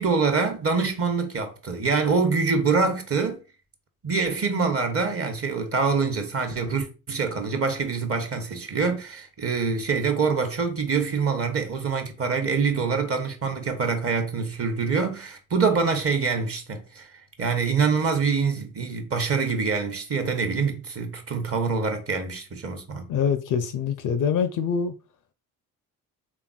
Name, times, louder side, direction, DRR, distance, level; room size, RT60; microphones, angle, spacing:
voice 1, 0.0-3.4 4.0-17.1 17.4-23.1, right 5 dB, 30° right, 0.8 m, -25 dB
voice 2, 23.1-24.9, left 7 dB, 45° left, 0.5 m, -24 dB
3.4 x 2.3 x 2.2 m
hypercardioid pair, 45°, 44 cm